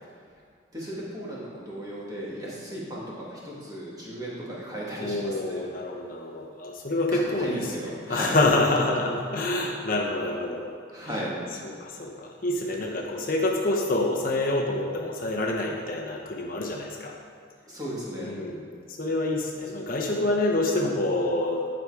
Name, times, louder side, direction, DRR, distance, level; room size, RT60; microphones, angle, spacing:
voice 1, 0.7-5.6 7.1-8.4 10.9-11.4 17.7-18.3, equal, 20° right, -6 dB, 1.9 m, -35 dB
voice 2, 5.0-7.8 8.1-10.6 11.0-11.2 11.6-17.2 18.2-21.7, left 2 dB, 45° left, -1 dB, 0.8 m, -27 dB
11.0 x 5.2 x 4.8 m, 2.2 s
head